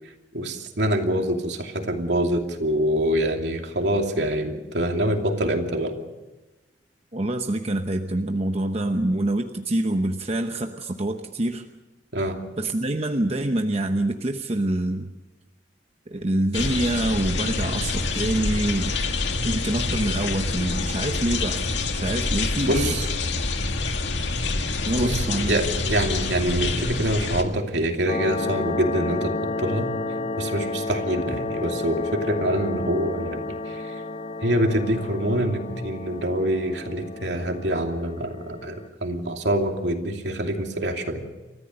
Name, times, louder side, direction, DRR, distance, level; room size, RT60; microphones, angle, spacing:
voice 1, 0.3-5.9 12.1-12.4 22.6-23.1 24.9-29.9 30.3-33.9 34.4-41.3, right 1 dB, 70° right, 3 dB, 2.7 m, -25 dB
voice 2, 7.1-11.7 12.6-15.1 16.1-19.0 19.4-21.7 21.9-23.0 24.8-25.6, right 1 dB, 35° right, 5 dB, 0.9 m, -26 dB
sound 1, 16.5-27.4, left 3 dB, 85° left, 1.9 m, -26 dB
sound 2, 28.1-38.9, left 2 dB, 35° left, 0.7 m, -31 dB
29.0 x 14.5 x 6.6 m, 1.1 s
head